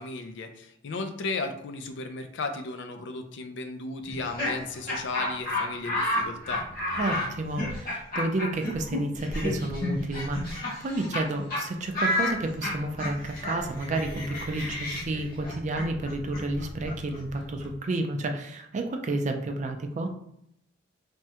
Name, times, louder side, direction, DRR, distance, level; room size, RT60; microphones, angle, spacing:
voice 1, 0.0-6.7, left 3 dB, 65° left, 7 dB, 0.4 m, -35 dB
Laughter, 4.1-11.2 11.5-11.6 11.9-17.7, left 1 dB, 45° left, 1.2 m, -31 dB
voice 2, 6.9-20.1, right 2 dB, 40° right, 4 dB, 0.4 m, -31 dB
3.4 x 2.1 x 2.8 m, 0.74 s
head